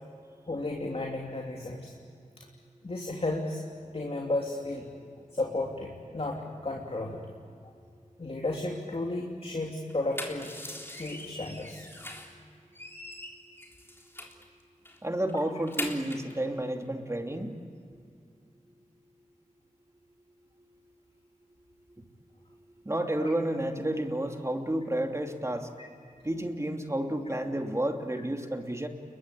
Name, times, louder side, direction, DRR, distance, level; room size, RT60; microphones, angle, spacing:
voice 1, 0.5-1.9 2.4-2.5 2.8-3.6 3.9-4.8 5.3-7.2 8.2-10.5 11.0-11.8 23.2-23.3, left 2 dB, 45° left, 0 dB, 3.2 m, -33 dB
sound 1, 9.9-12.4 12.7-14.4 14.8-15.0 15.3-16.3, left 1 dB, 15° left, 3.7 m, -41 dB
voice 2, 15.0-17.5 22.8-25.7 26.2-28.9, right 1 dB, 20° right, 3 dB, 2.8 m, -31 dB
30.0 x 22.5 x 8.5 m, 2.3 s
wide cardioid pair, 80°, 14 cm